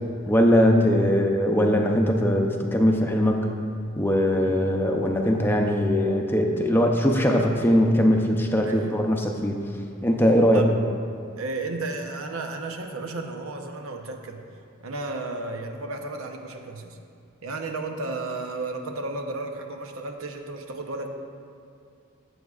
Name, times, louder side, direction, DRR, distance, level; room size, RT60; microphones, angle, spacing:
voice 1, 0.3-3.4 4.0-9.6 10.0-10.7, equal, 10° left, 2 dB, 0.6 m, -21 dB
voice 2, 4.4-4.9 8.6-9.0 10.5-10.7 11.4-14.4 14.8-17.0 17.4-21.1, right 2 dB, 80° right, 3 dB, 0.8 m, -33 dB
14.5 x 7.9 x 2.4 m, 2.4 s
head